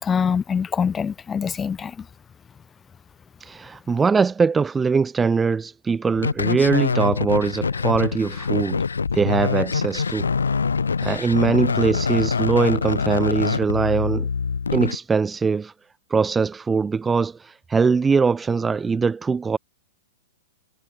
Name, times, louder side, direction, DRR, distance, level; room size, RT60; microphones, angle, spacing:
voice 1, 0.0-2.1, left 6 dB, 15° left, 4.1 m, -24 dB
voice 2, 3.4-8.8 9.1-10.3 11.0-14.3 14.7-15.7 16.1-19.6, right 5 dB, 15° right, 2.7 m, -22 dB
sound 1, 6.2-14.9, left 5 dB, 75° left, 3.3 m, -24 dB
figure-of-eight pair, 105°, 0 cm